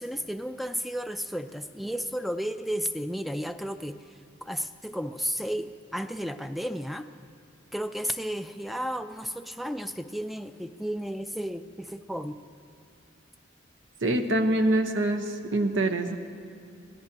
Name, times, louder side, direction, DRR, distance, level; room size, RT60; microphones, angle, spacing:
voice 1, 0.0-7.1 7.7-12.4, equal, ahead, 9 dB, 0.3 m, -33 dB
voice 2, 14.0-16.2, right 1 dB, 85° right, 6 dB, 1.0 m, -25 dB
25.5 x 17.5 x 2.9 m, 2.4 s
head